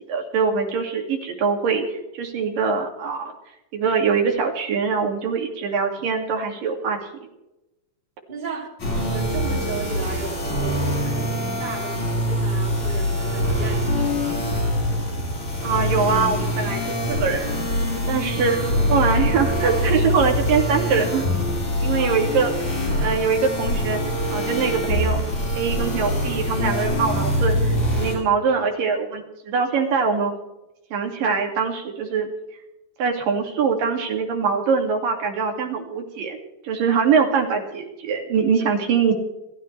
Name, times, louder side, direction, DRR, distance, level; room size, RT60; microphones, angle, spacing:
voice 1, 0.1-3.3 3.7-7.0 15.6-16.8 17.1-17.5 18.1-18.5 18.9-21.3 21.8-22.5 23.0-24.0 24.3-25.2 25.6-30.3 30.9-32.3 33.0-36.4 36.6-39.1, right 5 dB, 90° right, 4.2 m, -23 dB
voice 2, 8.3-14.6 18.3-18.6 22.0-22.2, right 4 dB, 15° right, 2.8 m, -34 dB
sound 1, 8.8-28.2, equal, 65° left, 8.6 m, -24 dB
29.5 x 13.0 x 3.4 m
omnidirectional pair, 3.8 m